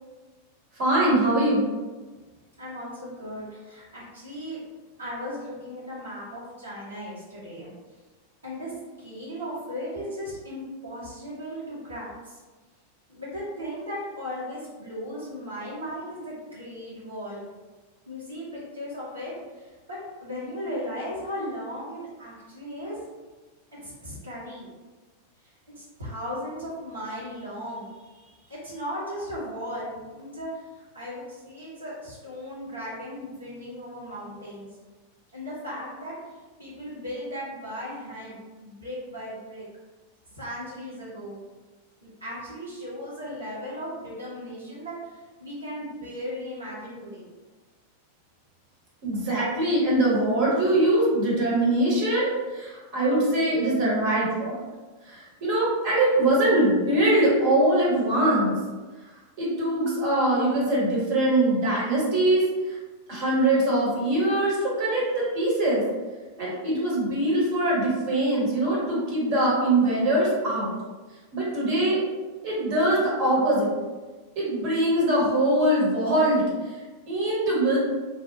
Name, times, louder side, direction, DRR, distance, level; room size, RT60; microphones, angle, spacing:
voice 1, 0.8-1.7 49.0-54.6 55.1-58.6 59.4-62.8 63.1-65.8 66.4-70.7 71.3-72.0 72.4-73.7 74.4-76.4 77.1-77.8, right 1 dB, 45° right, -6 dB, 1.0 m, -22 dB
voice 2, 2.6-4.6 5.0-7.7 8.4-8.7 9.0-12.4 13.1-17.4 18.1-23.0 23.7-24.7 25.8-34.7 35.3-36.1 36.6-39.6 40.3-41.4 42.0-44.9 45.4-47.3, equal, 75° right, -8 dB, 1.0 m, -37 dB
2.8 x 2.0 x 2.6 m, 1.3 s
figure-of-eight pair, 90°, 0 cm